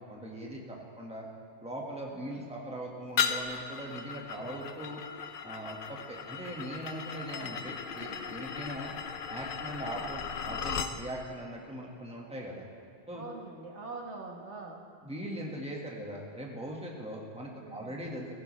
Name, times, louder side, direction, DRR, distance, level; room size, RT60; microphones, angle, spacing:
voice 1, 0.1-1.3 1.6-5.0 5.4-8.9 9.3-12.7 13.1-13.2 15.0-18.4, right 1 dB, 5° right, -2 dB, 1.6 m, -40 dB
sound 1, 3.2-11.0, left 7 dB, 55° left, 0.7 m, -36 dB
voice 2, 7.3-7.6 7.9-8.2 13.1-14.8 17.6-18.0, right 3 dB, 85° right, 0 dB, 1.7 m, -44 dB
15.5 x 15.5 x 3.2 m, 2.3 s
omnidirectional pair, 1.1 m